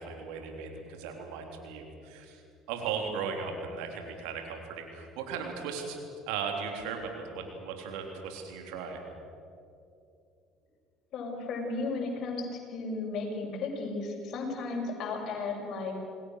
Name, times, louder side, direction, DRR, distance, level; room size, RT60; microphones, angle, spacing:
voice 1, 0.0-2.4 2.7-6.0 6.3-9.0, right 6 dB, 70° right, 3 dB, 3.7 m, -37 dB
voice 2, 11.1-15.9, left 3 dB, 55° left, 0 dB, 6.8 m, -34 dB
27.5 x 20.0 x 6.7 m, 2.6 s
hypercardioid pair, 65°, 0 cm